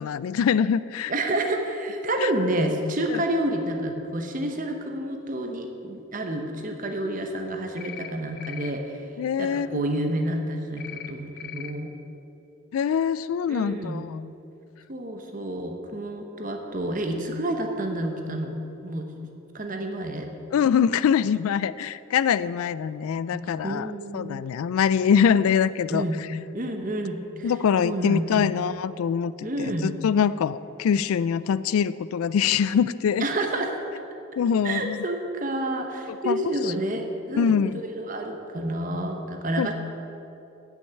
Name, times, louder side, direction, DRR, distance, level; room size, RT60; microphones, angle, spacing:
voice 1, 0.0-1.1 2.2-2.3 3.1-3.2 9.2-10.0 12.7-14.1 20.5-26.0 27.4-33.3 34.4-35.0 36.3-36.5 37.4-37.8 39.6-39.7, left 7 dB, 80° left, 17 dB, 0.3 m, -24 dB
voice 2, 1.1-9.0 9.4-11.9 13.5-14.1 14.9-18.6 18.8-19.1 19.5-20.3 23.3-24.4 25.9-26.2 26.5-27.5 27.8-28.6 29.4-29.9 33.2-33.8 34.6-39.7, right 1 dB, 35° right, 4 dB, 0.9 m, -29 dB
sound 1, 7.8-8.1 8.4-8.7 10.8-11.1 11.4-11.7, left 11 dB, 45° left, 0.6 m, -39 dB
8.6 x 6.5 x 8.3 m, 2.8 s
head